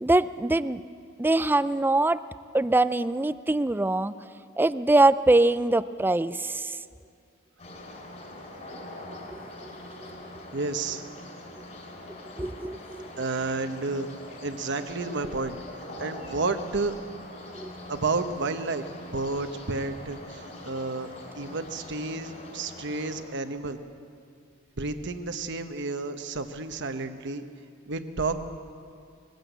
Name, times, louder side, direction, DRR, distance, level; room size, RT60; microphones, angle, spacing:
voice 1, 0.0-0.8 1.2-2.2 2.5-4.1 4.6-6.8 10.0-10.1 12.4-13.1 17.5-17.7, right 2 dB, 10° right, 15 dB, 0.4 m, -23 dB
sound 1, 7.6-23.2, left 1 dB, 35° left, 4.2 m, -43 dB
voice 2, 10.5-11.0 13.2-14.1 14.4-15.6 16.0-16.9 17.9-23.8 24.8-27.4 27.9-28.4, right 3 dB, 60° right, 9 dB, 1.1 m, -31 dB
21.0 x 15.5 x 8.1 m, 2.3 s
head